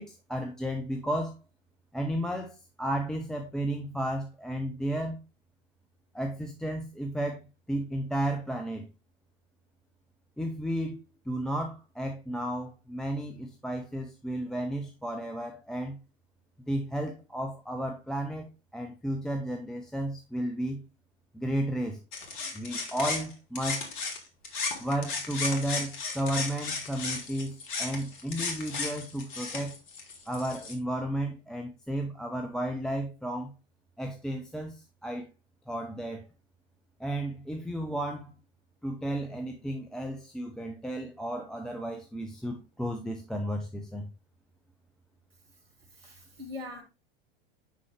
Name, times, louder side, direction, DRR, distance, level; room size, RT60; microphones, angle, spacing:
voice 1, 0.0-1.4 1.9-5.2 6.1-8.9 10.4-11.0 11.3-16.0 16.7-18.5 18.7-20.8 21.3-22.0 22.5-23.8 24.8-29.7 30.3-33.5 34.0-35.3 35.7-36.3 37.0-38.3 38.8-44.1, right 1 dB, ahead, 0.6 m, -33 dB
sound 1, 22.1-24.2 24.4-30.7, left 4 dB, 55° left, 1.8 m, -35 dB
voice 2, 45.5-46.8, left 2 dB, 80° right, 1.7 m, -43 dB
6.4 x 5.4 x 3.2 m
figure-of-eight pair, 85°, 29 cm